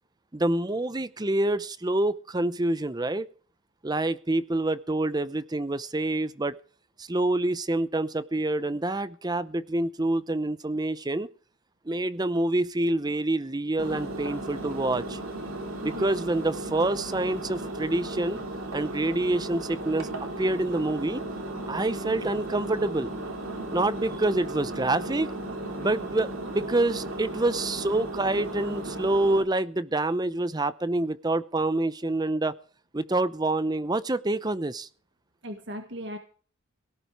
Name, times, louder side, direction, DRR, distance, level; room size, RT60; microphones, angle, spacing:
voice 1, 0.3-3.3 3.8-6.6 7.0-11.3 11.9-15.2 15.8-18.4 18.7-20.1 20.4-21.2 21.7-23.1 23.7-25.3 25.8-26.3 26.5-32.5 32.9-34.9, right 2 dB, 20° right, 0.7 m, -27 dB
Engine, 13.8-29.4, right 1 dB, 90° right, 3.2 m, -35 dB
voice 2, 15.8-16.1 35.4-36.2, equal, 60° right, 1.7 m, -37 dB
18.0 x 11.0 x 4.8 m
head